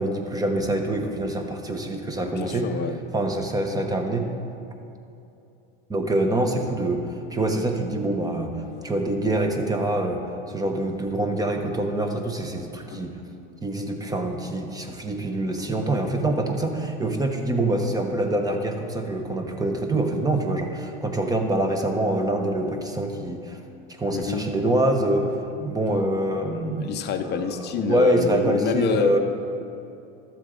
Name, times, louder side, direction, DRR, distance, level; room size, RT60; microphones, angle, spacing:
voice 1, 0.0-2.7 3.1-4.3 5.9-10.2 10.5-13.1 13.6-23.6 24.0-25.3 25.6-27.0 27.2-29.2, right 1 dB, 10° right, 3 dB, 1.0 m, -25 dB
voice 2, 2.2-3.0 12.9-13.0 24.1-24.5 26.8-29.2, left 5 dB, 35° left, 8 dB, 0.8 m, -27 dB
13.0 x 7.4 x 3.9 m, 2.7 s
supercardioid pair, 110°, 29 cm